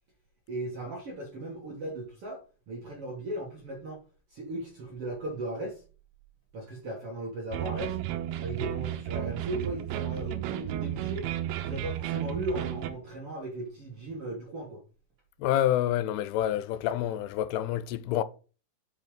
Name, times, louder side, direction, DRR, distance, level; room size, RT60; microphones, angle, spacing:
voice 1, 0.5-4.0 4.3-5.8 6.5-8.0 8.4-11.3 11.6-14.8, right 1 dB, 55° right, 1.7 m, -37 dB
sound 1, 7.5-12.9, right 12 dB, 90° right, 2.6 m, -33 dB
voice 2, 15.4-18.2, left 12 dB, 85° left, 2.6 m, -28 dB
6.0 x 5.6 x 5.1 m
omnidirectional pair, 4.6 m